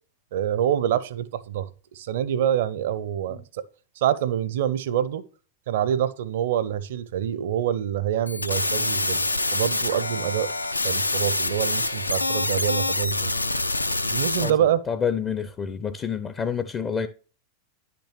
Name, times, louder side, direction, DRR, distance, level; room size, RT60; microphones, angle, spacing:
voice 1, 0.3-3.6 4.0-5.2 5.7-10.5 10.8-13.3 14.1-14.8, right 10 dB, 55° right, 0.5 m, -26 dB
sound 1, 8.3-14.5, left 2 dB, 85° left, 0.4 m, -26 dB
voice 2, 14.9-17.1, left 7 dB, 25° left, 0.5 m, -28 dB
10.0 x 5.9 x 3.1 m
figure-of-eight pair, 90°, 0 cm